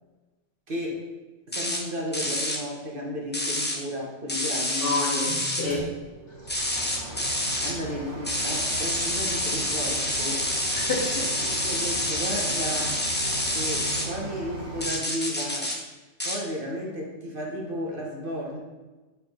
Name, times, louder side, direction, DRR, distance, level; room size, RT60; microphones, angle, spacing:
voice 1, 0.7-1.0 1.5-5.0 7.6-10.5 11.6-13.0 13.5-15.7 16.2-18.6, equal, 45° right, -2 dB, 1.3 m, -33 dB
sound 1, 1.5-1.8 2.1-2.6 3.3-3.8 4.3-5.6 6.5-7.7 8.2-14.1 14.8-15.8 16.2-16.4, left 1 dB, 10° left, 0.6 m, -28 dB
voice 2, 4.8-5.8 6.5-6.6 10.7-11.5 13.8-13.9, left 2 dB, 50° left, -3 dB, 1.7 m, -29 dB
sound 2, 5.7-14.9, right 1 dB, 60° right, 1.4 m, -38 dB
8.8 x 4.1 x 3.7 m, 1.2 s
omnidirectional pair, 1.3 m